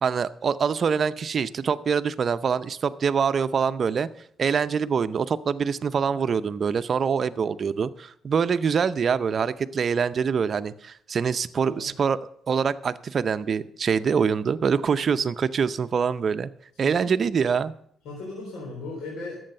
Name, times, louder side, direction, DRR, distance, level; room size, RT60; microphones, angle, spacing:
voice 1, 0.0-4.1 4.4-12.2 12.5-16.5 16.8-17.7, right 6 dB, 50° right, 12 dB, 0.6 m, -24 dB
voice 2, 11.6-11.9 16.8-17.2 18.0-19.4, left 2 dB, 85° left, -2 dB, 3.6 m, -37 dB
12.0 x 7.8 x 6.6 m, 0.67 s
cardioid pair, 90°, 0 cm